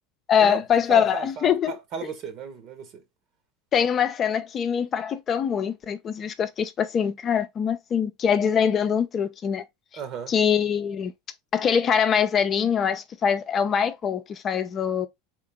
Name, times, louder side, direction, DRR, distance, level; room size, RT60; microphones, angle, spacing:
voice 1, 0.3-1.7 3.7-9.6 10.3-11.1 11.5-15.1, left 7 dB, 35° left, 0.7 m, -23 dB
voice 2, 0.9-3.0 9.9-10.3, right 7 dB, 50° right, 1.4 m, -35 dB
3.8 x 3.8 x 3.7 m
hypercardioid pair, 100°, 0 cm